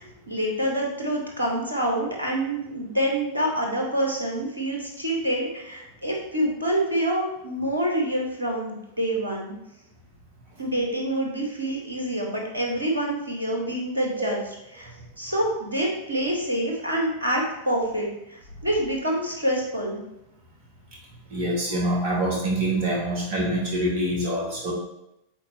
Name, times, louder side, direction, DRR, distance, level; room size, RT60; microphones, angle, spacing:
voice 1, 0.0-9.5 10.6-14.4 14.7-14.9 15.2-20.0, right 1 dB, 80° right, 0 dB, 1.5 m, -27 dB
voice 2, 21.3-24.7, right 1 dB, 45° right, -4 dB, 2.4 m, -25 dB
7.5 x 4.3 x 3.2 m, 0.84 s
figure-of-eight pair, 90°, 0 cm